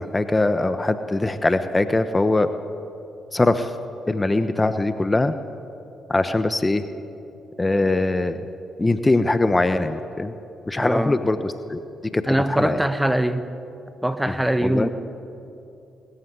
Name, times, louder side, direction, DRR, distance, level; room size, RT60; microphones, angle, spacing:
voice 1, 0.0-2.5 3.3-3.7 4.1-5.3 6.1-6.8 7.6-8.4 8.8-10.3 10.7-11.8 12.1-12.8 14.6-14.9, left 2 dB, 20° left, 10 dB, 1.0 m, -22 dB
voice 2, 10.8-11.2 12.3-13.5 14.0-14.9, right 1 dB, 5° right, 11 dB, 1.2 m, -22 dB
20.5 x 14.5 x 9.6 m, 2.8 s
hypercardioid pair, 50°, 0 cm